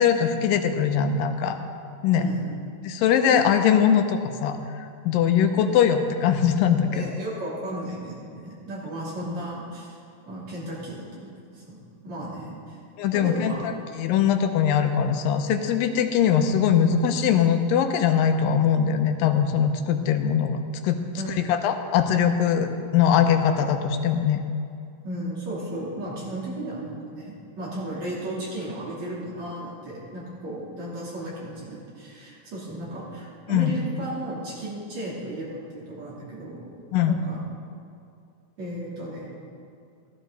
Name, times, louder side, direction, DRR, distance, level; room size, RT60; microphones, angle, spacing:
voice 1, 0.0-1.6 2.0-2.2 2.8-4.6 5.1-7.1 13.0-21.0 21.4-24.4 33.5-33.7 36.9-37.1, left 8 dB, 85° left, 7 dB, 2.4 m, -21 dB
voice 2, 2.1-2.5 6.9-10.0 10.3-11.8 12.0-12.8 13.1-13.6 21.1-21.5 25.0-36.6 37.0-37.4 38.6-39.3, right 1 dB, 55° right, -7 dB, 4.3 m, -34 dB
14.0 x 14.0 x 4.0 m, 2.4 s
omnidirectional pair, 3.9 m